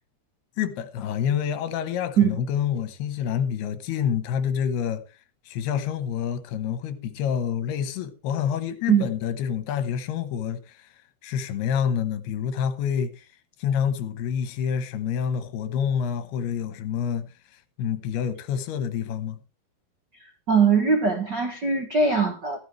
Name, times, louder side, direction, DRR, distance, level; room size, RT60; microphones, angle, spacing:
voice 1, 0.6-5.0 5.5-10.9 11.2-13.3 13.6-17.3 17.8-19.4, left 8 dB, 80° left, 3.1 m, -27 dB
voice 2, 20.5-22.6, right 5 dB, 70° right, 1.0 m, -21 dB
15.0 x 12.0 x 3.2 m
omnidirectional pair, 4.6 m